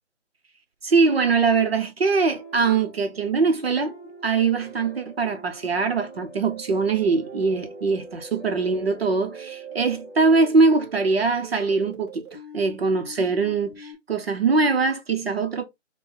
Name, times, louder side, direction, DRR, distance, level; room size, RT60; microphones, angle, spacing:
voice 1, 0.8-3.9 4.2-12.2 12.5-15.6, right 4 dB, 55° right, 0.8 m, -22 dB
sound 1, 2.1-10.2, right 2 dB, 15° left, 0.9 m, -45 dB
sound 2, 6.4-13.9, right 3 dB, 25° right, 1.2 m, -43 dB
4.3 x 2.2 x 3.9 m
figure-of-eight pair, 165°, 36 cm